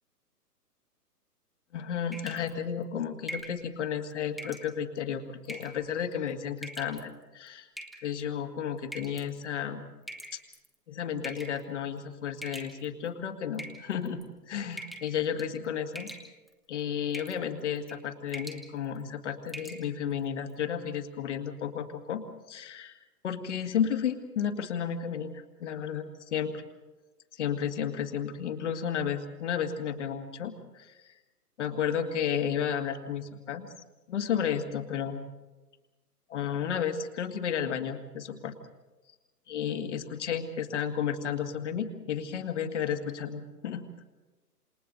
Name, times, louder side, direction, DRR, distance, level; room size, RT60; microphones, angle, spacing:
voice 1, 1.7-7.7 8.0-9.9 10.3-10.4 10.9-14.2 14.5-16.1 16.7-22.2 22.5-23.0 23.2-26.6 27.3-31.1 31.6-33.7 34.1-35.3 36.3-38.5 39.5-43.8, left 8 dB, 45° left, 6 dB, 2.0 m, -32 dB
sound 1, 2.1-2.5 3.3-3.6 4.4-4.7 5.4-5.8 6.6-7.0 7.8-8.2 8.9-9.2 10.1-10.7 11.2-11.6 12.4-13.1 13.5-14.2 14.8-15.1 15.4-15.6 15.9-16.5 17.1-17.4 17.8-18.0 18.3-18.6 19.0-19.1 19.5-19.8, right 1 dB, ahead, 1.4 m, -42 dB
28.0 x 28.0 x 4.0 m, 1.2 s
figure-of-eight pair, 125°, 48 cm